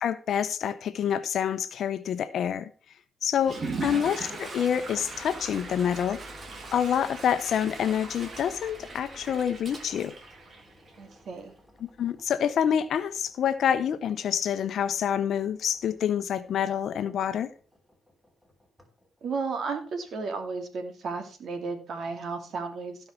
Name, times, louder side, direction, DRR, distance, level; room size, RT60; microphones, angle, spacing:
voice 1, 0.0-2.7 3.2-6.2 6.7-10.1 12.0-17.5, left 8 dB, 65° left, 0.8 m, -27 dB
Water / Toilet flush, 3.4-11.1, right 3 dB, 40° right, 2.4 m, -39 dB
voice 2, 3.6-4.0 11.0-11.5 19.2-23.1, right 4 dB, 60° right, 2.7 m, -34 dB
Engine, 3.9-20.8, left 1 dB, ahead, 3.2 m, -53 dB
16.0 x 5.6 x 4.5 m
cardioid pair, 90°, 0 cm